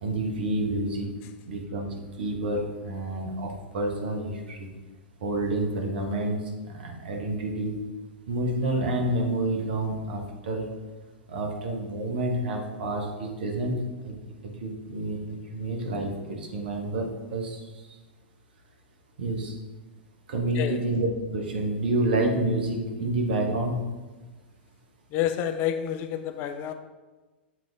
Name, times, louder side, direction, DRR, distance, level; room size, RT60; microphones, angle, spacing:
voice 1, 0.0-1.1 1.5-1.9 2.2-4.7 5.2-6.4 6.7-7.7 8.3-10.6 11.3-14.1 14.6-17.6 19.2-19.6 20.3-23.9, right 2 dB, 60° right, 1 dB, 1.1 m, -29 dB
voice 2, 25.1-26.7, left 10 dB, 35° left, 9 dB, 0.4 m, -28 dB
7.3 x 3.8 x 3.4 m, 1.2 s
figure-of-eight pair, 100°, 6 cm